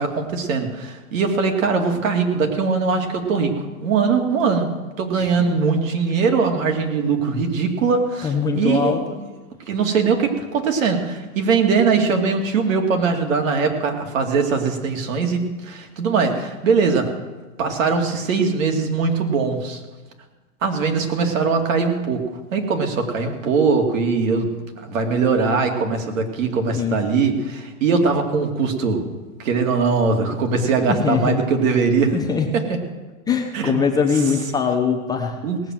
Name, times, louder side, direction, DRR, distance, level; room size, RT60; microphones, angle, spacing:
voice 1, 0.0-8.9 9.7-17.1 17.6-19.8 20.6-22.3 22.5-29.0 29.4-32.1 32.5-32.8 33.5-33.8 35.4-35.6, right 5 dB, 65° right, 4 dB, 2.7 m, -21 dB
voice 2, 8.2-9.2 26.8-27.2 30.9-31.4 32.1-32.5 33.3-35.4, left 5 dB, 10° left, 2 dB, 0.7 m, -22 dB
18.0 x 7.7 x 7.6 m, 1.2 s
hypercardioid pair, 150°, 42 cm